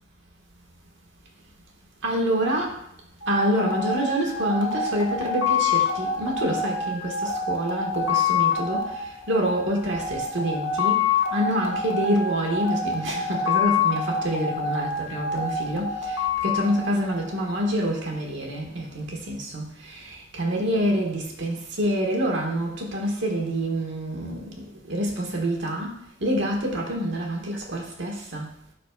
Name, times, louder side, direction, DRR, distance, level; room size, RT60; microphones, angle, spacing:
voice 1, 2.0-2.8 3.3-8.8 9.3-11.0 11.3-16.1 16.4-24.4 24.9-25.9 26.2-28.5, equal, 65° right, -1 dB, 1.5 m, -27 dB
sound 1, 3.2-17.7, left 5 dB, 80° left, 1.1 m, -27 dB
11.5 x 4.1 x 2.3 m, 0.70 s
head